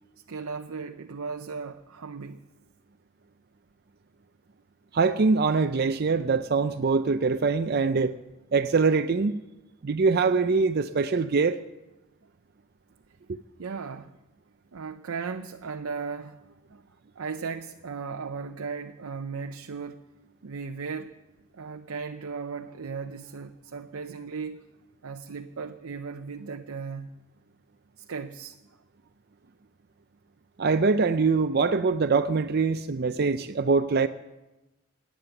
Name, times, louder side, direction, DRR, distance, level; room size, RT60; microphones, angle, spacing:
voice 1, 0.3-2.4 13.6-14.2 14.7-16.4 16.7-16.8 17.2-20.0 20.4-21.2 21.5-24.6 25.0-27.2 28.0-28.6, right 5 dB, 90° right, 0.6 m, -36 dB
voice 2, 4.9-8.2 8.5-9.4 9.8-11.6 30.6-34.1, right 4 dB, 50° right, 0.5 m, -23 dB
19.0 x 9.2 x 7.0 m
head